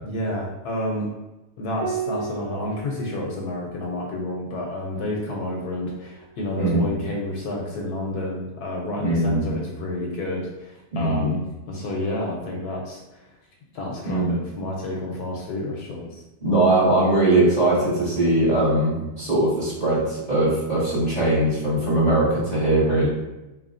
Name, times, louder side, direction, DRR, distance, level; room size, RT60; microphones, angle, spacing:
voice 1, 0.0-1.1 1.6-13.2 13.7-16.2, left 1 dB, 70° left, -1 dB, 1.1 m, -30 dB
Piano, 1.8-6.7 8.3-9.1, right 5 dB, 70° right, 1.0 m, -37 dB
voice 2, 6.6-6.9 9.0-9.4 10.9-11.3 14.0-14.4 16.4-23.1, right 1 dB, 25° right, -10 dB, 1.4 m, -20 dB
4.1 x 3.4 x 2.5 m, 1.0 s
omnidirectional pair, 1.9 m